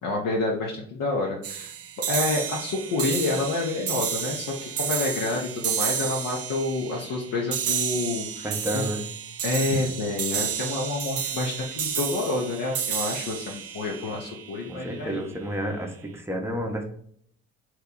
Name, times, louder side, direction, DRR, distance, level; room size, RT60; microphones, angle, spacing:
voice 1, 0.0-1.7 2.1-8.9 9.4-15.2, left 3 dB, 60° left, -1 dB, 0.7 m, -28 dB
sound 1, 1.4-14.9, right 8 dB, 40° right, 0.5 m, -31 dB
voice 2, 8.4-9.1 14.7-16.9, right 1 dB, 5° right, 2 dB, 0.7 m, -30 dB
2.9 x 2.2 x 3.6 m, 0.64 s
hypercardioid pair, 50°, 38 cm